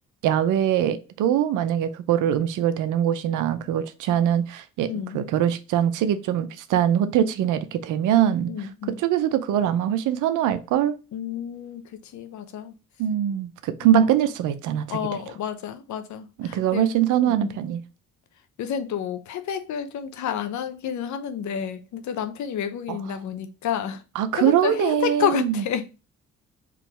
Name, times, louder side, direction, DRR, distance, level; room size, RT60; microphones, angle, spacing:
voice 1, 0.2-8.5 9.0-11.0 13.0-15.0 16.4-17.8 22.9-23.0 24.2-25.6, right 10 dB, 85° right, 0.6 m, -22 dB
voice 2, 4.9-5.2 8.5-9.0 11.1-12.7 13.8-13.9 14.9-17.6 18.6-24.0 24.3-25.9, left 8 dB, 70° left, 0.8 m, -30 dB
3.8 x 3.0 x 4.4 m
cardioid pair, 90°, 30 cm